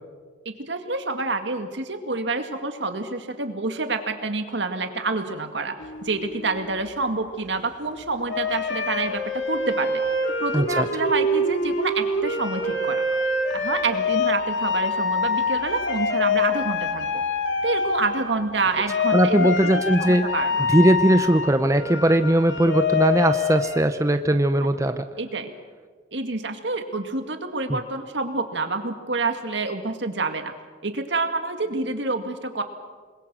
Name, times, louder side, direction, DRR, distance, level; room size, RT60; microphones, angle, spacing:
voice 1, 0.5-10.0 10.4-13.0 13.5-17.2 17.6-19.7 20.0-20.7 25.2-25.5 26.1-30.5 30.8-32.6, right 3 dB, 75° right, 7 dB, 2.1 m, -28 dB
sound 1, 5.8-7.0 8.3-18.5 18.9-23.8, left 3 dB, 80° left, 2.2 m, -25 dB
voice 2, 10.5-10.9 19.1-20.3 20.7-25.0 27.7-27.8, right 1 dB, 15° right, 8 dB, 0.7 m, -19 dB
27.5 x 21.5 x 6.2 m, 1.5 s
head